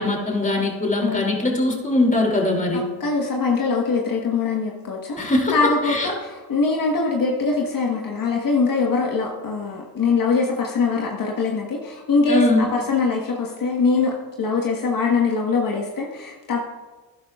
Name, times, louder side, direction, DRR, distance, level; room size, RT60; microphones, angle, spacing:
voice 1, 0.0-2.9 5.2-5.5 5.8-6.1 12.3-12.7, left 2 dB, 20° left, 0 dB, 2.8 m, -21 dB
voice 2, 2.7-5.2 5.5-16.7, left 4 dB, 60° left, -1 dB, 1.4 m, -23 dB
12.0 x 10.5 x 2.4 m, 1.3 s
cardioid pair, 70°, 38 cm